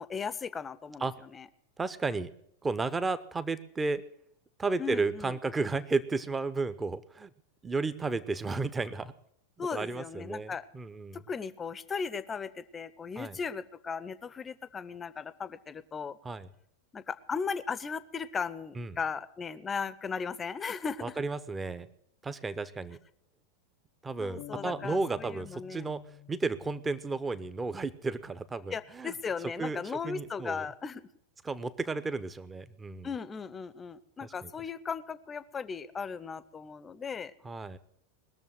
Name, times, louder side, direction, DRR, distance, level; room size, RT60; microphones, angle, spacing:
voice 1, 0.0-1.5 4.8-5.4 9.6-10.7 11.3-16.2 16.9-21.1 24.2-25.9 28.7-31.1 33.0-37.3, left 5 dB, 20° left, 16 dB, 0.7 m, -37 dB
voice 2, 1.8-2.3 2.6-4.0 4.6-7.3 7.6-9.1 9.6-11.2 13.2-13.4 16.2-16.5 18.8-19.0 21.0-21.9 22.2-23.0 24.0-26.0 26.3-29.1 29.6-29.8 30.0-30.7 31.4-33.1 34.2-34.5 37.4-37.8, right 3 dB, 15° right, 14 dB, 0.8 m, -33 dB
sound 1, 24.4-28.1, left 15 dB, 50° left, 0.8 m, -51 dB
20.5 x 7.0 x 7.9 m, 0.71 s
figure-of-eight pair, 90°, 0 cm